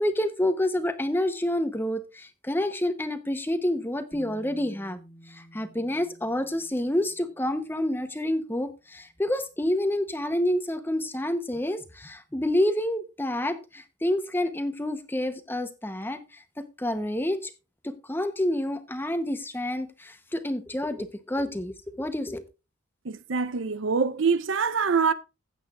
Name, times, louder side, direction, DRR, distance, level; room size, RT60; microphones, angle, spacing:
voice 1, 0.0-5.0 5.3-17.5 17.8-22.4, left 1 dB, 10° left, 0.8 m, -28 dB
Bass guitar, 4.1-8.1 9.2-9.3, right 1 dB, 15° right, 2.1 m, -51 dB
voice 2, 23.0-25.1, right 5 dB, 60° right, 0.6 m, -24 dB
16.0 x 8.0 x 2.4 m
head